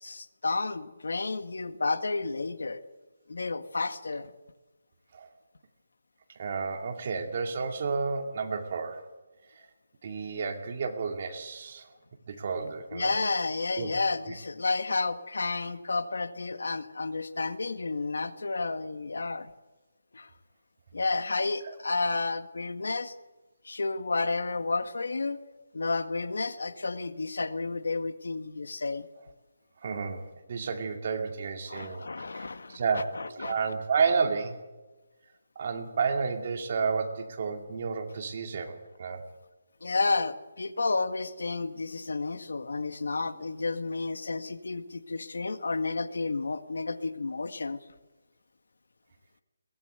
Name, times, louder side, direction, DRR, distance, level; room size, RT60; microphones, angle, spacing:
voice 1, 0.0-2.8 3.3-4.3 12.9-19.5 20.1-20.3 20.9-23.1 23.6-25.4 25.7-29.1 31.7-33.6 39.8-47.8, left 3 dB, 85° left, 11 dB, 1.7 m, -31 dB
voice 2, 6.4-9.1 9.6-9.7 10.0-11.9 12.3-13.1 13.8-13.9 21.6-21.8 29.8-32.0 32.3-34.6 35.6-39.2, right 5 dB, 35° right, 5 dB, 2.4 m, -31 dB
22.5 x 18.5 x 8.1 m, 1.2 s
hypercardioid pair, 175°, 0 cm